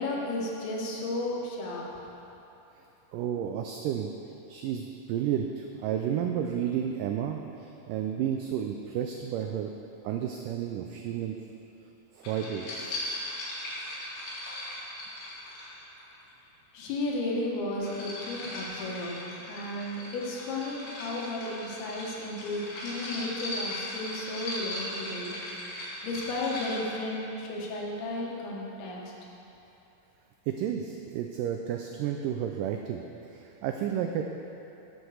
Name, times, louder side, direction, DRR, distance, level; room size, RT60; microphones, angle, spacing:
voice 1, 0.0-1.8 16.7-25.4 26.0-29.1, left 2 dB, 80° left, -2 dB, 3.3 m, -34 dB
voice 2, 3.1-4.1 4.5-4.8 5.1-9.7 10.0-11.4 12.1-13.4 30.5-33.0 33.3-34.2, right 9 dB, 90° right, 3 dB, 1.9 m, -32 dB
sound 1, 12.2-16.1 17.4-26.9, left 1 dB, 65° left, 3.8 m, -38 dB
9.0 x 7.8 x 6.4 m, 3.0 s
omnidirectional pair, 4.4 m